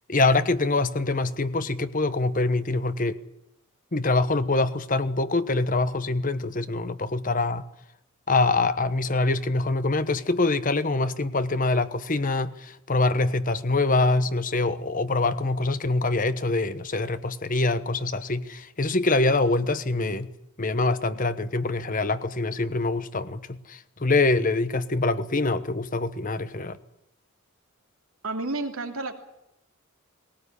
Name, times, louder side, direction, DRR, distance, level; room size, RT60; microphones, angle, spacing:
voice 1, 0.1-3.2 3.9-7.7 8.3-20.3 20.6-26.8, left 2 dB, 40° left, 13 dB, 1.2 m, -24 dB
voice 2, 28.2-29.1, right 2 dB, 85° right, 4 dB, 3.1 m, -30 dB
20.5 x 18.5 x 10.0 m, 0.81 s
head